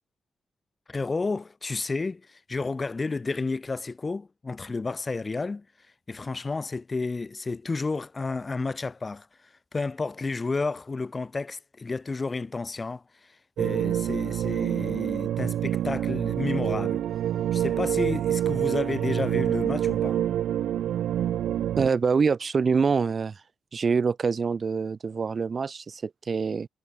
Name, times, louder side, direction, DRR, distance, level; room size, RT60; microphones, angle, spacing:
voice 1, 0.9-5.6 6.1-9.3 9.7-13.0 13.6-17.0 17.5-20.2, left 3 dB, 35° left, 6.4 m, -31 dB
sound 1, 13.6-21.9, right 11 dB, 75° right, 0.5 m, -27 dB
voice 2, 21.8-23.3 23.7-26.7, right 5 dB, 50° right, 3.4 m, -25 dB
hypercardioid pair, 45°, 0 cm